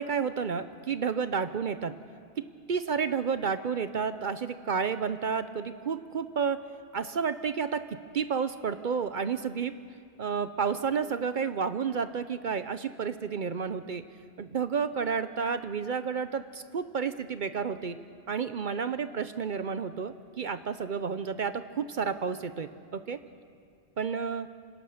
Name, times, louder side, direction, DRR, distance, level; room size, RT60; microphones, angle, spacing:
voice 1, 0.0-2.0 2.4-6.6 6.9-7.8 8.1-9.7 10.2-14.0 14.4-18.0 18.3-23.2 24.0-24.5, right 6 dB, 55° right, 11 dB, 0.7 m, -31 dB
26.0 x 18.0 x 6.5 m, 2.2 s
omnidirectional pair, 1.1 m